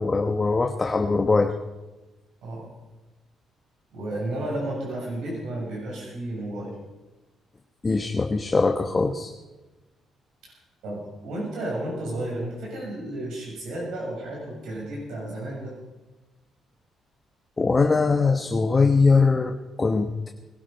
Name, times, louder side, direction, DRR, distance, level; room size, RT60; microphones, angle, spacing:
voice 1, 0.0-1.5 7.8-9.3 17.6-20.3, left 4 dB, 25° left, 5 dB, 1.0 m, -21 dB
voice 2, 3.9-6.7 10.4-10.5 10.8-15.8, right 1 dB, 85° right, -3 dB, 6.9 m, -32 dB
20.5 x 12.5 x 5.2 m, 1.1 s
cardioid pair, 90°, 0 cm